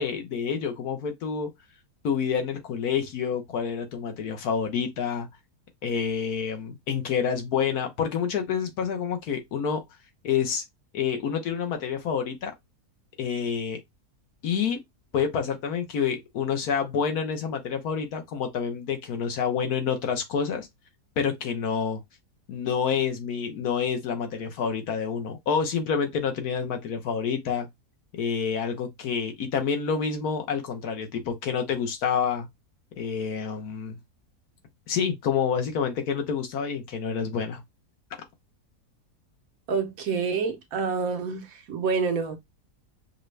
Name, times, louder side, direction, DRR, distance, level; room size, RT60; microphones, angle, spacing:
voice 1, 0.0-1.5 2.0-5.3 5.8-9.8 10.2-10.6 10.9-12.5 13.2-13.8 14.4-14.8 15.1-20.7 21.2-22.0 22.5-27.7 28.1-32.5 33.0-33.9 34.9-37.6, left 6 dB, 70° left, 1.3 m, -28 dB
voice 2, 39.7-42.4, right 5 dB, 65° right, 1.1 m, -27 dB
5.0 x 2.2 x 3.2 m
omnidirectional pair, 1.7 m